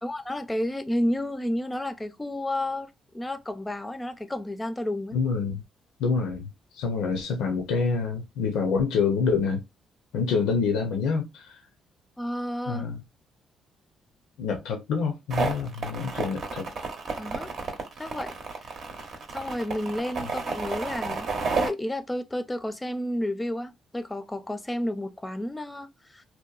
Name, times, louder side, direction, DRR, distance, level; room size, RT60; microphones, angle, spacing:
voice 1, 0.0-2.9 3.1-5.2 12.2-12.9 17.2-17.5 18.0-18.3 19.3-21.3 21.6-26.2, left 1 dB, 15° left, 0.4 m, -31 dB
voice 2, 5.1-5.6 6.0-6.5 6.7-9.6 10.1-11.6 12.7-13.0 14.4-16.7, left 5 dB, 90° left, 0.5 m, -26 dB
sound 1, 15.3-21.7, right 4 dB, 65° right, 0.7 m, -31 dB
2.8 x 2.1 x 2.2 m
cardioid pair, 90°, 0 cm